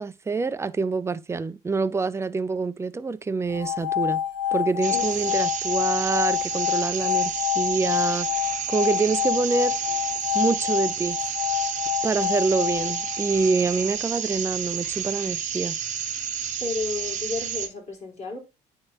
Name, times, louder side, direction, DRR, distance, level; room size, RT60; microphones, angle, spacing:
voice 1, 0.0-4.2 4.5-9.8 10.3-11.2 12.0-15.8, right 4 dB, 15° right, 0.4 m, -26 dB
sound 1, 3.5-13.6, left 10 dB, 80° left, 0.9 m, -27 dB
sound 2, 4.8-17.7, right 8 dB, 45° right, 1.0 m, -30 dB
voice 2, 4.9-5.4 16.6-18.4, left 3 dB, 45° left, 3.5 m, -32 dB
9.8 x 3.5 x 2.7 m
cardioid pair, 110°, 17 cm